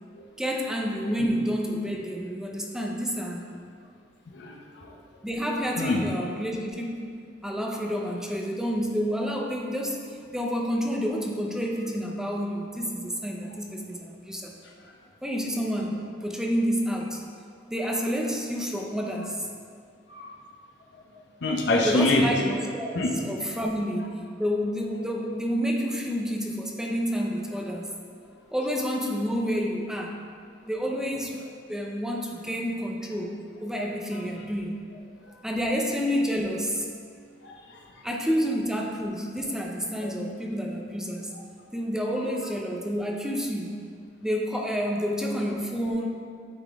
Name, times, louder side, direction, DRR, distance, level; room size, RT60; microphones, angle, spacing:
voice 1, 0.4-3.4 5.2-7.1 7.4-10.0 10.3-14.5 15.2-17.2 17.7-19.5 21.8-27.9 28.5-30.2 30.7-31.4 31.7-33.3 33.6-34.8 35.4-36.9 38.0-41.3 41.7-43.7 44.2-46.1, equal, 5° right, 0 dB, 0.6 m, -29 dB
voice 2, 4.3-4.9 5.8-6.0 20.1-20.3 21.4-22.3 22.9-23.1 37.4-37.5 40.0-40.1, left 2 dB, 65° left, 0 dB, 0.7 m, -25 dB
9.7 x 4.0 x 3.5 m, 2.2 s
head